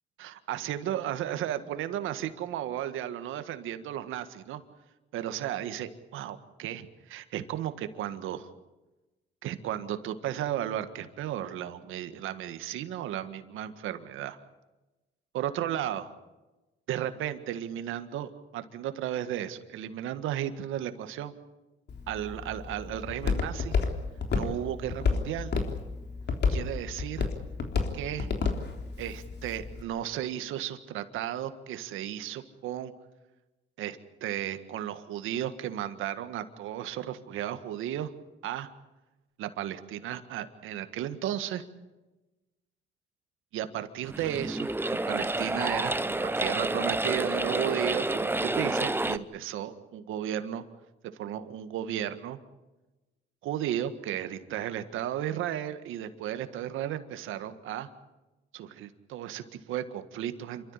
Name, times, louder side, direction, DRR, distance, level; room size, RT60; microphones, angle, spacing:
voice 1, 0.2-4.6 5.1-8.5 9.4-14.4 15.3-16.1 16.9-21.3 22.1-23.8 24.3-25.5 26.5-27.3 27.9-28.3 29.0-32.9 33.8-38.1 38.4-38.7 39.4-41.6 43.5-50.6 51.2-52.4 53.4-57.9 58.5-60.7, right 11 dB, 90° right, 10 dB, 1.8 m, -34 dB
Walk footsteps, 21.9-29.8, left 5 dB, 60° left, 3.6 m, -31 dB
sound 1, 44.0-49.2, right 2 dB, 10° right, 0.9 m, -29 dB
28.0 x 13.5 x 9.9 m, 1.1 s
cardioid pair, 90°, 20 cm